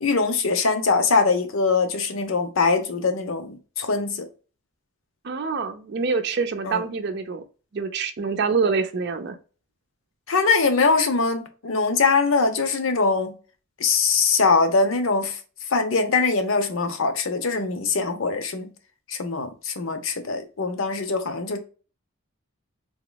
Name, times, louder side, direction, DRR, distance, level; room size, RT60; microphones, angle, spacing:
voice 1, 0.0-4.3 6.6-6.8 10.3-13.3 13.8-15.4 15.7-18.7 19.1-21.6, left 4 dB, 75° left, 0.7 m, -22 dB
voice 2, 5.2-7.4 7.7-9.3, right 5 dB, 55° right, 0.5 m, -25 dB
3.6 x 3.0 x 2.3 m
head